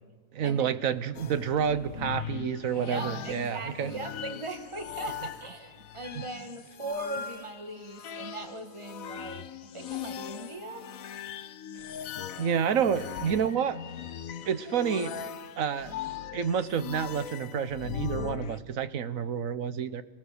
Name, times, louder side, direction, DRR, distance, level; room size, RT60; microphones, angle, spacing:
voice 1, 0.3-3.9 6.2-6.3 12.4-13.8 14.5-15.1 15.6-15.9 16.3-20.0, right 7 dB, 75° right, 13 dB, 1.4 m, -29 dB
sound 1, 1.1-18.6, left 8 dB, 80° left, 1.3 m, -40 dB
voice 2, 1.6-2.1 2.8-9.5 9.7-10.9, right 2 dB, 20° right, 6 dB, 1.7 m, -39 dB
29.0 x 17.5 x 6.9 m, 1.3 s
omnidirectional pair, 1.4 m